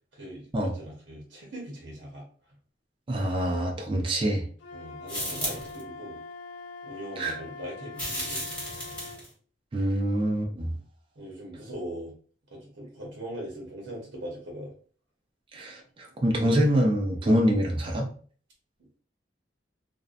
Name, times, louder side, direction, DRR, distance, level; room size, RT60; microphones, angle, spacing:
voice 1, 0.1-2.3 4.7-6.2 6.8-8.4 11.2-12.2 12.5-14.7, right 1 dB, 80° right, -2 dB, 0.8 m, -40 dB
voice 2, 3.1-4.5 7.2-7.4 9.7-10.7 15.5-18.1, equal, 30° right, 1 dB, 0.4 m, -25 dB
Wind instrument woodwind instrument, 4.6-9.2, left 4 dB, 80° left, 0.4 m, -43 dB
sound 1, 5.1-5.8 7.9-9.3, equal, 10° left, 1.1 m, -34 dB
2.6 x 2.1 x 2.4 m, 0.44 s
head